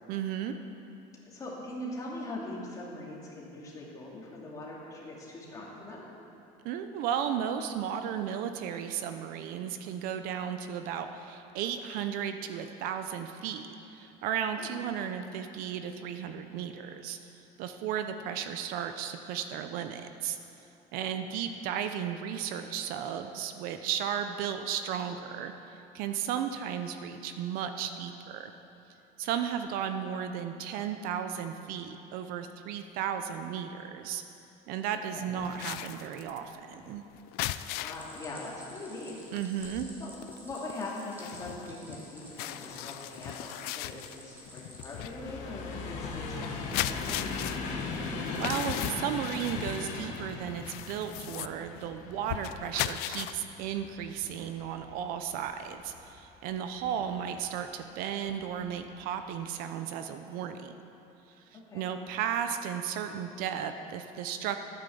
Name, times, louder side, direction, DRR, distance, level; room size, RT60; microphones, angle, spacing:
voice 1, 0.1-0.6 6.6-17.2 17.6-20.4 20.9-28.5 29.2-34.2 34.7-37.0 39.3-39.9 48.4-60.7 61.5-64.6, right 8 dB, 60° right, 8 dB, 0.7 m, -34 dB
voice 2, 1.2-6.1 14.5-14.7 21.0-21.1 34.9-35.4 37.8-39.2 40.0-47.3 56.8-57.0 61.5-61.9, left 1 dB, 20° left, -4 dB, 2.5 m, -42 dB
sound 1, 35.4-38.2 38.6-38.8 39.1-53.3, left 14 dB, 65° left, 0.5 m, -38 dB
Stream, 37.9-44.9, equal, 10° right, 2.1 m, -51 dB
sound 2, 45.0-56.1 56.7-57.4 58.3-58.5 58.8-58.9, left 4 dB, 50° left, 1.7 m, -39 dB
14.0 x 9.2 x 7.1 m, 2.9 s
cardioid pair, 175°, 17 cm